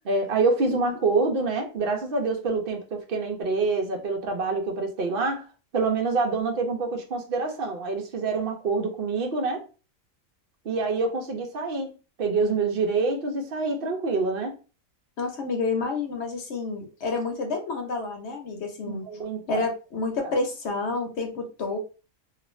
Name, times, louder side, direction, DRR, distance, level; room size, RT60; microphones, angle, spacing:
voice 1, 0.0-5.4 5.7-9.6 10.6-14.6 18.9-19.6 20.2-20.3, right 3 dB, 55° right, 0.7 m, -26 dB
voice 2, 15.2-19.0 19.5-21.8, left 3 dB, 60° left, 1.0 m, -29 dB
2.5 x 2.4 x 3.1 m
omnidirectional pair, 1.4 m